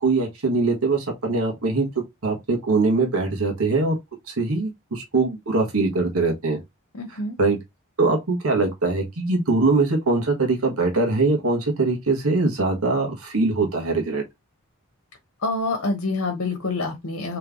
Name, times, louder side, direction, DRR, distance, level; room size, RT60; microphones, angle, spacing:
voice 1, 0.0-1.9 2.2-3.9 4.3-6.6 7.4-7.6 8.0-14.2, right 3 dB, 80° right, 1.3 m, -22 dB
voice 2, 6.9-7.4 15.4-17.4, left 3 dB, 70° left, 1.0 m, -26 dB
3.5 x 3.2 x 3.6 m
head